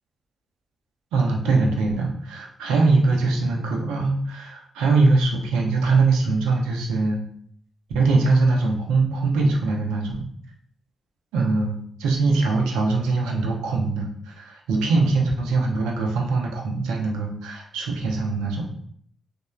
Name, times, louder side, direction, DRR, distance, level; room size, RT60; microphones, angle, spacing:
voice 1, 1.1-7.2 7.9-10.3 11.3-18.7, right 3 dB, 85° right, 1 dB, 0.4 m, -22 dB
3.1 x 2.0 x 2.3 m, 0.64 s
hypercardioid pair, 40°, 0 cm